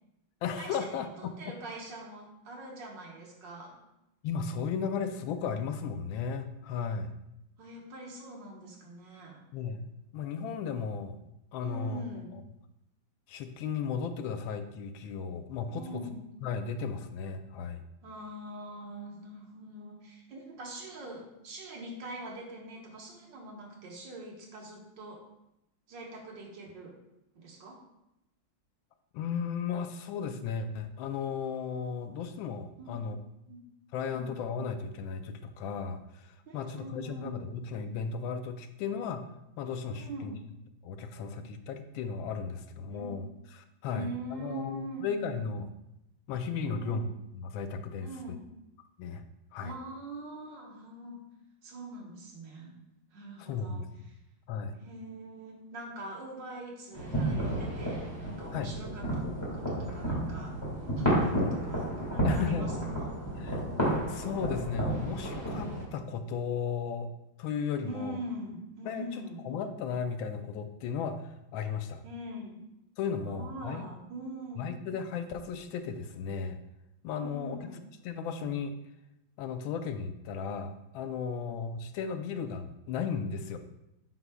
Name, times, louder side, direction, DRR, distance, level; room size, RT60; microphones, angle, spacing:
voice 1, 0.4-1.3 4.2-7.1 9.5-9.8 10.1-11.2 11.5-12.0 13.3-16.0 16.4-17.8 29.1-33.2 33.9-39.3 39.6-40.3 40.8-45.7 46.3-47.1 47.3-48.1 49.0-49.2 49.5-49.7 53.4-54.1 54.5-54.8 58.5-58.7 62.2-62.7 63.3-63.6 64.1-67.1 67.4-68.2 68.8-72.0 73.0-73.9 74.6-76.6 77.0-77.8 78.0-78.7 79.4-83.6, left 6 dB, 85° left, 8 dB, 1.3 m, -35 dB
voice 2, 1.2-3.8 7.6-9.4 11.6-12.4 15.7-16.2 18.0-25.2 25.9-27.0 27.4-27.8 32.8-33.0 33.5-33.6 34.1-34.3 36.5-37.4 39.9-40.4 42.9-43.2 43.9-45.1 46.6-47.1 48.0-48.4 49.6-51.2 51.6-52.7 53.1-53.8 54.1-54.2 54.8-59.3 59.5-60.7 61.0-63.1 67.8-69.5 72.0-72.6 73.2-74.7 77.2-77.9 81.3-81.5, right 1 dB, 65° right, -1 dB, 1.8 m, -43 dB
sound 1, 56.9-65.8, right 1 dB, 15° left, 1.7 m, -31 dB
7.9 x 5.6 x 2.2 m, 0.86 s
omnidirectional pair, 2.1 m